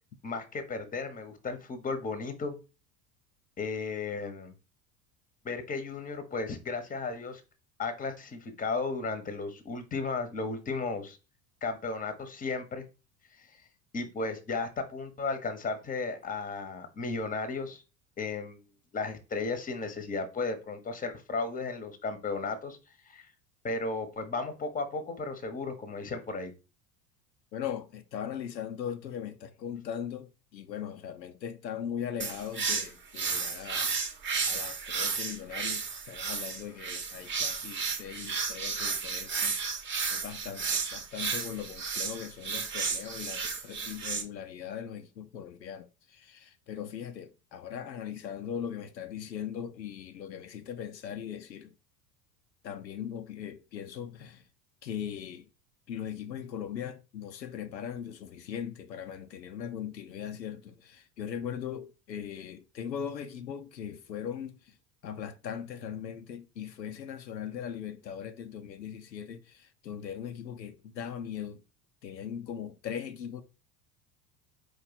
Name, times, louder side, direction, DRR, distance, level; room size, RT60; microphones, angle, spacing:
voice 1, 0.2-2.6 3.6-4.5 5.4-7.4 7.8-11.2 11.6-12.8 13.4-13.5 13.9-17.8 18.2-18.6 18.9-22.8 23.1-23.3 23.6-26.5, left 4 dB, 15° left, 0.9 m, -34 dB
voice 2, 27.5-33.9 34.5-51.7 52.6-54.4 54.8-55.5 55.9-64.8 65.0-71.6 72.0-73.4, left 8 dB, 90° left, 0.6 m, -39 dB
sound 1, 32.2-44.2, right 5 dB, 25° right, 0.9 m, -33 dB
4.6 x 2.6 x 4.0 m
figure-of-eight pair, 70°, 49 cm